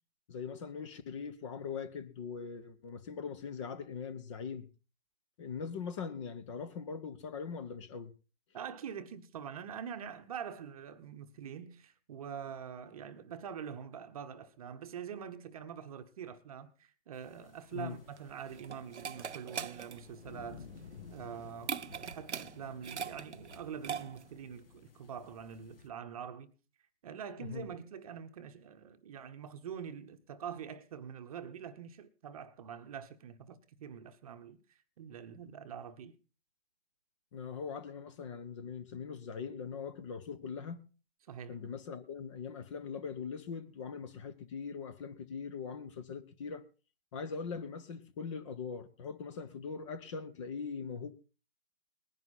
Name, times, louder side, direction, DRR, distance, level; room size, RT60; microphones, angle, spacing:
voice 1, 0.3-4.7 5.4-8.1 17.7-18.0 27.4-27.7 37.3-40.9 41.5-46.6 47.1-51.1, left 6 dB, 30° left, 1.1 m, -41 dB
voice 2, 8.5-20.7 21.1-26.5 27.0-36.1 41.3-41.6, right 8 dB, 35° right, 1.1 m, -45 dB
sound 1, 17.1-25.9, left 5 dB, 55° left, 2.8 m, -55 dB
sound 2, 18.0-24.4, right 7 dB, 90° right, 0.6 m, -42 dB
19.5 x 10.5 x 4.2 m
figure-of-eight pair, 140°, 33 cm